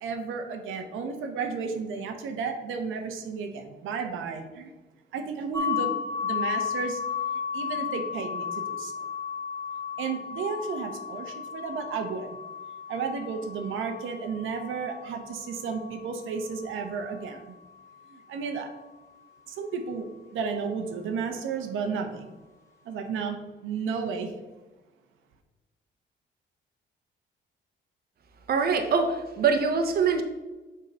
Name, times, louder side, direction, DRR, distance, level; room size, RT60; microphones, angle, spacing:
voice 1, 0.0-4.7 5.1-5.9 6.2-7.0 7.5-8.9 10.0-12.3 12.9-17.4 18.1-18.7 19.5-20.1 20.3-22.3 22.9-23.4 23.6-24.3, right 5 dB, 85° right, 4 dB, 0.9 m, -33 dB
sound 1, 5.5-17.3, left 7 dB, 15° left, 1.3 m, -34 dB
voice 2, 28.5-30.2, right 5 dB, 50° right, 6 dB, 0.8 m, -24 dB
6.7 x 3.7 x 5.5 m, 1.2 s
cardioid pair, 90°, 20 cm